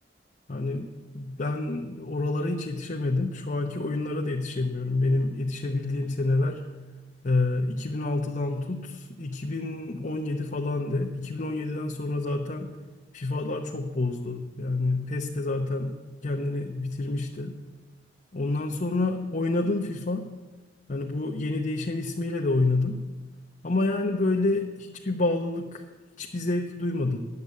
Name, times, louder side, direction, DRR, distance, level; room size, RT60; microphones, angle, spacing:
voice 1, 0.5-0.9 1.1-6.6 7.2-12.7 13.1-17.6 18.3-20.3 20.9-23.0 23.6-25.8 26.2-27.3, left 2 dB, 40° left, 0 dB, 0.8 m, -28 dB
10.5 x 8.2 x 8.5 m, 1.2 s
head